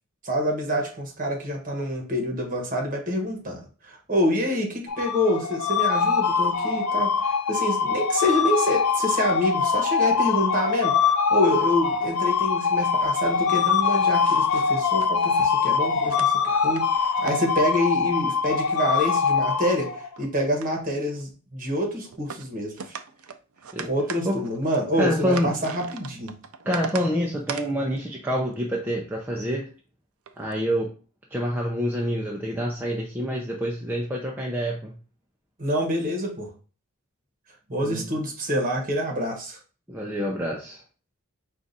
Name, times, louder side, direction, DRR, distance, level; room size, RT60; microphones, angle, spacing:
voice 1, 0.2-23.0 23.8-26.4 35.6-36.5 37.7-39.6, equal, 35° right, 1 dB, 1.3 m, -27 dB
sound 1, 4.9-20.1, left 6 dB, 80° left, 0.5 m, -23 dB
sound 2, 13.5-15.5 16.0-16.8 17.2-18.0 18.5-20.3 20.6-21.2 22.1-22.5 22.8-27.1 27.5-27.7 29.4-29.6 30.3-30.5, right 6 dB, 75° right, 0.5 m, -39 dB
voice 2, 25.0-25.5 26.6-29.7 30.4-30.9 31.3-34.9 37.8-38.0 39.9-40.8, equal, 10° right, -2 dB, 0.5 m, -27 dB
4.7 x 2.5 x 4.0 m, 0.37 s
head